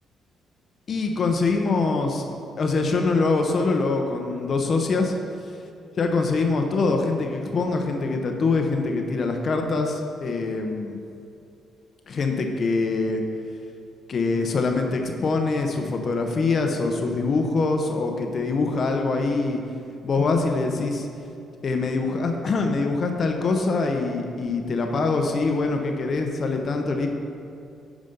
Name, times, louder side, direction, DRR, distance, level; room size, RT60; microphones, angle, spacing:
voice 1, 0.9-2.3 2.6-5.2 5.4-5.5 6.0-11.0 12.1-13.2 14.1-19.6 20.0-21.1 21.6-27.1, left 3 dB, 50° left, 3 dB, 0.8 m, -24 dB
9.3 x 5.1 x 5.4 m, 2.6 s
cardioid pair, 90°, 0 cm